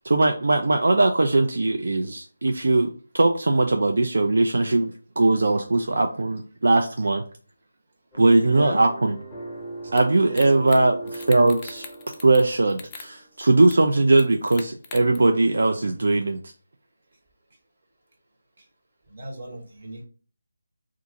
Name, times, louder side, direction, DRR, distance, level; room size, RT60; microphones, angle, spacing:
voice 1, 0.0-7.2 8.1-9.1 9.9-11.8 12.2-16.4, right 2 dB, 70° right, 4 dB, 0.4 m, -20 dB
sound 1, 8.1-13.3, right 2 dB, ahead, 0.8 m, -39 dB
voice 2, 8.4-8.9 10.2-10.5 19.1-20.0, right 1 dB, 40° right, 0 dB, 0.9 m, -33 dB
sound 2, 10.0-10.1 10.4-10.8 11.1-12.4 12.7-13.1 13.7-13.8 14.2-15.2, left 5 dB, 15° left, 0.4 m, -41 dB
2.8 x 2.4 x 3.6 m, 0.41 s
figure-of-eight pair, 165°, 0 cm